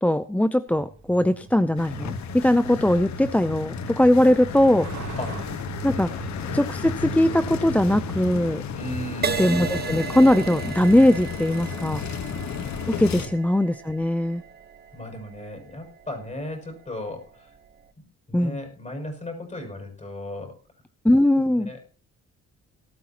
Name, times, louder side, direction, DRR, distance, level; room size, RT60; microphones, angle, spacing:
voice 1, 0.0-4.9 5.8-6.1 6.5-8.6 9.4-12.0 12.9-14.4 18.3-18.6 21.0-21.7, left 1 dB, 5° left, 11 dB, 0.5 m, -20 dB
Truck, 0.7-8.3, right 5 dB, 60° right, 3.5 m, -40 dB
sound 1, 1.8-13.3, left 7 dB, 65° left, 1.4 m, -33 dB
voice 2, 6.1-6.7 8.7-9.5 13.2-13.3 14.9-17.5 18.3-20.5 21.5-21.8, left 1 dB, 25° left, 3 dB, 6.2 m, -36 dB
Crash cymbal, 9.2-16.9 17.5-17.8, right 6 dB, 35° right, 1.3 m, -35 dB
18.5 x 12.5 x 2.9 m, 0.39 s
cardioid pair, 90°, 30 cm